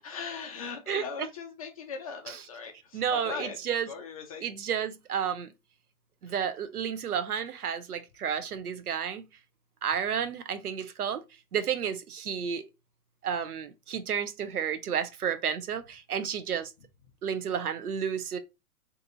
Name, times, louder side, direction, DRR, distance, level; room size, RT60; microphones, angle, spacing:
voice 1, 0.0-4.5 6.3-6.4, left 5 dB, 30° left, 0.3 m, -40 dB
voice 2, 2.9-3.9 4.4-5.5 6.2-9.3 9.8-11.2 11.5-12.6 13.2-16.7 17.2-18.4, right 8 dB, 85° right, 0.6 m, -31 dB
2.6 x 2.4 x 2.6 m
figure-of-eight pair, 105°, 44 cm